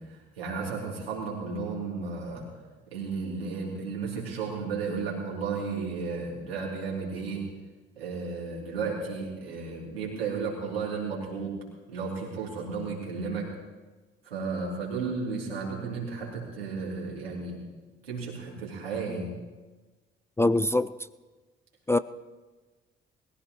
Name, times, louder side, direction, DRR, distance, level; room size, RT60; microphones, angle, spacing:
voice 1, 0.0-2.5 2.9-7.4 7.9-11.5 11.9-13.5 14.2-17.6 18.0-19.3, right 4 dB, 80° right, -4 dB, 3.4 m, -33 dB
voice 2, 20.4-20.9 21.9-22.0, left 2 dB, 10° left, 14 dB, 0.4 m, -22 dB
21.0 x 15.0 x 3.2 m, 1.2 s
figure-of-eight pair, 45°, 30 cm